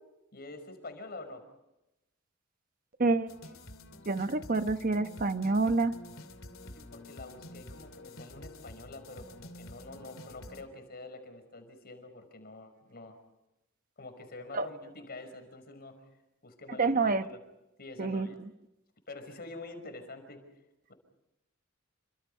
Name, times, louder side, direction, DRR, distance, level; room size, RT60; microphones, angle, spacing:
voice 1, 0.3-1.4 6.6-13.2 14.0-16.0 16.4-16.9 17.2-17.4 17.8-18.4 19.1-20.4, left 2 dB, 50° left, 8 dB, 5.6 m, -46 dB
sound 1, 3.3-10.6, left 1 dB, 80° left, 2.9 m, -49 dB
voice 2, 4.1-5.9 14.5-14.7 16.8-17.2 18.0-18.3, right 3 dB, 45° right, 9 dB, 1.0 m, -27 dB
28.5 x 26.0 x 5.6 m, 0.92 s
head